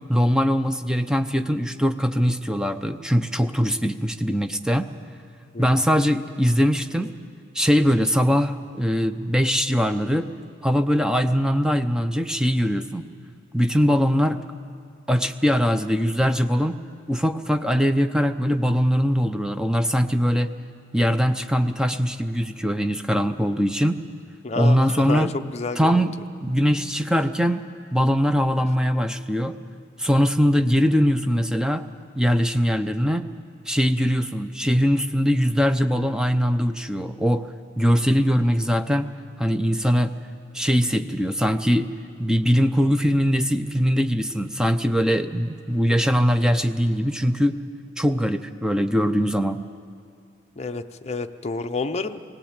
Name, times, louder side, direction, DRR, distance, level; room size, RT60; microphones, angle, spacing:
voice 1, 0.1-4.9 5.6-7.1 7.5-10.3 10.6-13.1 13.5-14.4 15.1-16.8 17.1-20.5 20.9-24.0 24.5-25.3 25.8-26.1 26.4-29.6 30.0-31.8 32.2-33.3 33.7-37.5 37.8-40.2 40.5-47.6 48.0-49.6, equal, 5° right, 8 dB, 0.5 m, -21 dB
voice 2, 24.4-25.9 50.6-52.2, left 3 dB, 35° left, 6 dB, 0.6 m, -29 dB
18.0 x 18.0 x 8.9 m, 2.3 s
head